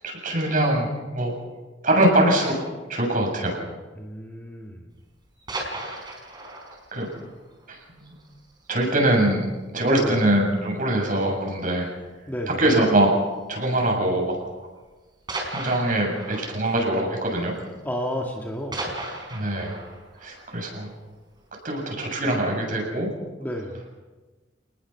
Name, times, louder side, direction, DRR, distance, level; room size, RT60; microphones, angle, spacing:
voice 1, 0.0-1.3 1.8-2.6 2.9-3.6 6.9-7.1 7.7-8.1 8.7-9.4 9.7-11.9 12.5-13.1 13.5-14.4 15.5-17.6 19.3-19.8 20.2-20.9 21.6-23.1, right 1 dB, 45° right, 1 dB, 7.6 m, -23 dB
voice 2, 4.0-4.9 9.8-10.2 12.3-12.6 17.8-18.9 23.4-23.8, equal, 10° left, 0 dB, 2.1 m, -31 dB
sound 1, 5.2-8.8 9.1-9.2 9.6-9.8 10.1-10.2 11.0-11.5 12.7-12.9 13.8-13.9 15.3-18.1 18.3-21.5 21.9-22.0, right 2 dB, 25° right, 4.7 m, -37 dB
29.0 x 20.0 x 5.9 m, 1.2 s
head